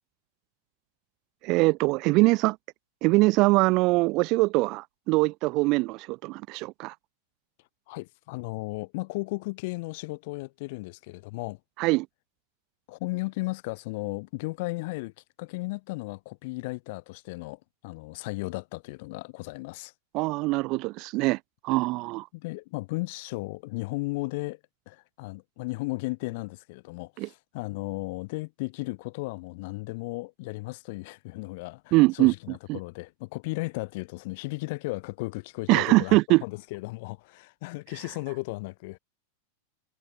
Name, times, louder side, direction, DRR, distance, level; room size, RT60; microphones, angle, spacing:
voice 1, 1.4-2.6 3.0-6.9 11.8-12.1 20.1-21.4 21.6-22.3 27.2-27.3 31.9-32.3 32.7-32.8 35.7-36.4, right 23 dB, 40° right, 0.6 m, -23 dB
voice 2, 7.9-11.6 12.9-19.9 22.3-24.6 24.9-39.0, left 24 dB, 50° left, 4.7 m, -35 dB
figure-of-eight pair, 90°, 0 cm